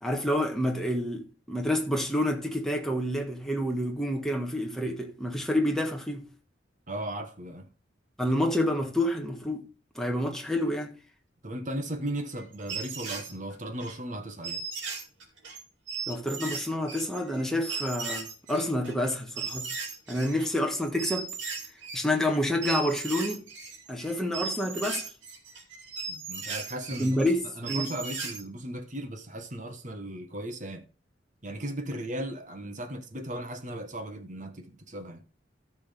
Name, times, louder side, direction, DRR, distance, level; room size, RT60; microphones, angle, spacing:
voice 1, 0.0-6.3 8.2-9.7 9.9-11.0 16.1-19.7 20.1-21.3 21.9-23.4 23.9-25.0 27.0-27.9, left 1 dB, 5° left, 1.5 m, -28 dB
voice 2, 6.9-7.7 11.4-14.6 26.1-27.3 27.6-30.9 31.4-35.2, right 1 dB, 40° right, 1.3 m, -36 dB
sound 1, 12.2-13.9 14.4-20.5 20.8-22.4 22.6-28.4, right 5 dB, 75° right, 2.5 m, -37 dB
14.0 x 6.2 x 3.4 m
head